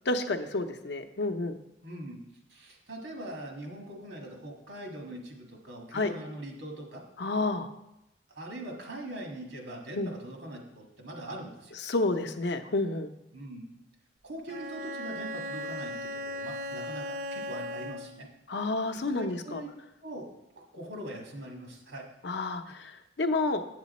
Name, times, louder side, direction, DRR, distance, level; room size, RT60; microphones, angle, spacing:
voice 1, 0.1-1.6 5.9-6.1 7.2-7.7 10.0-10.1 11.8-13.1 18.5-19.6 22.2-23.6, left 2 dB, 65° left, 8 dB, 0.6 m, -30 dB
voice 2, 1.8-2.2 2.5-7.0 8.3-11.7 13.3-13.7 14.2-18.3 19.1-19.7 20.0-20.3 20.7-22.1, right 1 dB, 75° right, 1 dB, 1.7 m, -42 dB
Bowed string instrument, 14.5-18.3, left 1 dB, 45° right, 0.6 m, -37 dB
8.2 x 7.4 x 4.2 m, 0.90 s
head